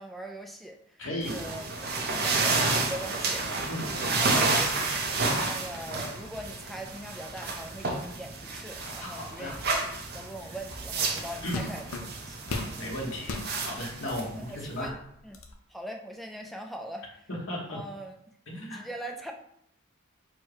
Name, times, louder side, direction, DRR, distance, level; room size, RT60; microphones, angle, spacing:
voice 1, 0.0-3.5 3.8-5.0 5.3-12.4 14.1-15.0 15.2-15.4 15.7-17.1 17.7-18.1 18.6-19.3, right 1 dB, ahead, 2 dB, 0.4 m, -41 dB
voice 2, 1.0-1.4 3.7-3.9 9.0-9.5 11.4-11.6 12.8-13.4 13.6-14.9 17.5-17.8 18.5-18.8, left 1 dB, 65° left, -2 dB, 1.2 m, -35 dB
sound 1, 1.2-14.9, right 3 dB, 50° right, 0.7 m, -31 dB
sound 2, 10.8-11.0 11.5-12.8 13.2-13.5 14.2-14.3 14.8-15.5, left 3 dB, 85° left, 0.6 m, -36 dB
4.5 x 2.2 x 4.6 m, 0.72 s
head